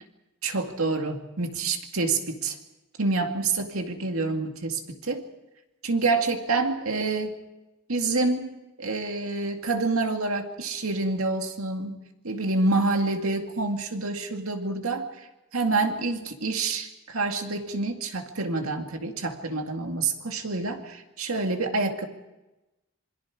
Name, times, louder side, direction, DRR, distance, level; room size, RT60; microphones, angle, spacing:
voice 1, 0.4-2.6 3.0-5.2 5.8-7.4 7.9-8.5 8.8-12.0 12.2-15.3 15.5-22.1, right 3 dB, 75° right, 4 dB, 2.2 m, -27 dB
27.0 x 22.0 x 5.0 m, 1.0 s
head